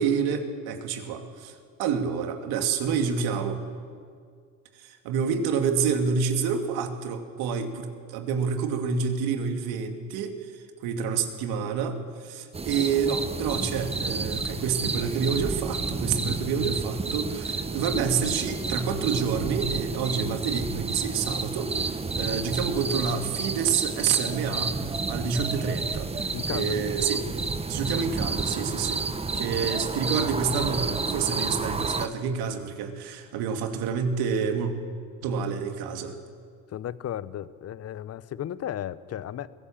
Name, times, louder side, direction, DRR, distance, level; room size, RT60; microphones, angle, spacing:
voice 1, 0.0-3.6 4.7-27.2 27.7-29.1 29.3-34.7 35.2-36.2, right 6 dB, 65° right, 5 dB, 2.5 m, -28 dB
sound 1, 12.5-32.1, right 4 dB, 15° right, 1.1 m, -30 dB
voice 2, 26.3-26.7 29.3-29.7 36.7-39.5, left 11 dB, 35° left, 17 dB, 0.9 m, -35 dB
23.0 x 17.0 x 7.5 m, 2.1 s
hypercardioid pair, 70°, 41 cm